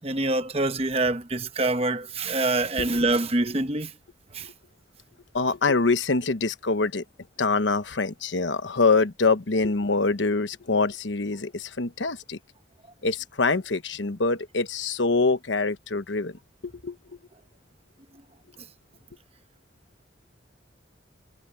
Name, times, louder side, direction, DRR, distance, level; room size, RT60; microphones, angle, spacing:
voice 1, 0.0-4.0 4.3-4.5, right 2 dB, 30° right, 1.0 m, -25 dB
voice 2, 5.3-7.0 7.4-12.4 13.0-16.4 16.6-17.0, left 3 dB, 80° left, 1.0 m, -25 dB
head